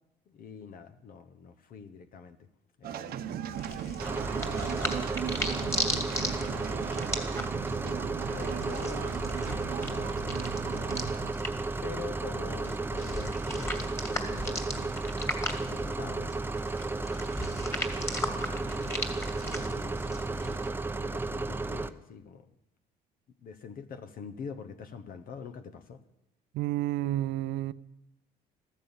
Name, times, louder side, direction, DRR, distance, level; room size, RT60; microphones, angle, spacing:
voice 1, 0.3-2.5 2.8-7.4 7.8-11.1 11.8-15.2 15.7-16.3 16.9-20.6 21.0-22.5 23.4-26.0, left 6 dB, 60° left, 9 dB, 1.1 m, -46 dB
sound 1, 2.8-11.3, right 10 dB, 65° right, 1.0 m, -38 dB
sound 2, 3.5-20.7, left 1 dB, 15° left, 2.5 m, -38 dB
sound 3, 4.0-21.9, right 3 dB, 10° right, 0.8 m, -33 dB
voice 2, 26.5-27.7, right 14 dB, 80° right, 15 dB, 0.7 m, -30 dB
14.5 x 13.5 x 7.3 m, 0.85 s
cardioid pair, 110°, 17 cm